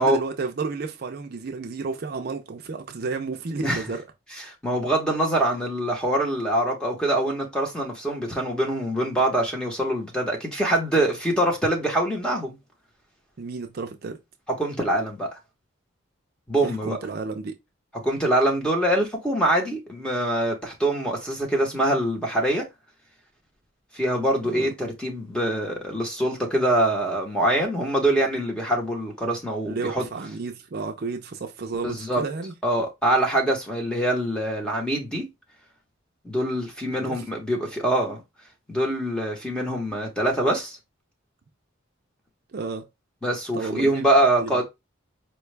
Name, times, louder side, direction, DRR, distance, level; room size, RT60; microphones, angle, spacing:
voice 1, 0.0-4.0 13.4-14.2 16.6-17.5 24.4-24.7 29.7-32.5 36.8-37.2 42.5-42.9 43.5-44.1 44.4-44.6, right 4 dB, 50° right, 0.5 m, -32 dB
voice 2, 4.5-12.6 14.6-15.4 16.5-17.0 18.0-22.7 23.9-30.0 31.8-32.2 32.6-35.3 36.2-38.2 38.7-40.8 43.2-44.6, right 1 dB, 5° left, 1.0 m, -24 dB
4.5 x 2.3 x 3.2 m
head